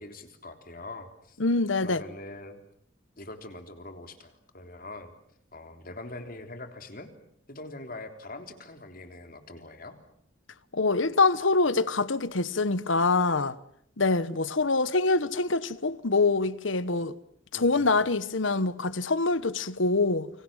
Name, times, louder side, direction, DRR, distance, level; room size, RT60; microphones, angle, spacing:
voice 1, 0.0-1.4 1.8-2.6 3.2-5.1 5.5-7.1 7.5-10.0 17.5-17.9, left 2 dB, 45° left, 3.5 m, -43 dB
voice 2, 1.4-2.0 10.7-13.6 14.0-17.2 17.5-20.3, left 3 dB, 80° left, 1.2 m, -25 dB
29.5 x 25.5 x 7.5 m
head